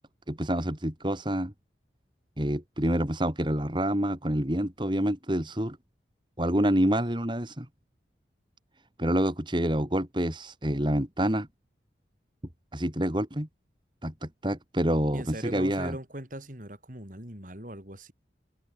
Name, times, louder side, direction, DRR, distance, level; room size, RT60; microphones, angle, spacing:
voice 1, 0.3-1.5 2.4-5.8 6.4-7.7 9.0-11.5 12.7-13.5 14.0-16.0, equal, 25° right, 2.9 m, -27 dB
voice 2, 15.1-18.1, right 1 dB, 45° right, 4.6 m, -40 dB
head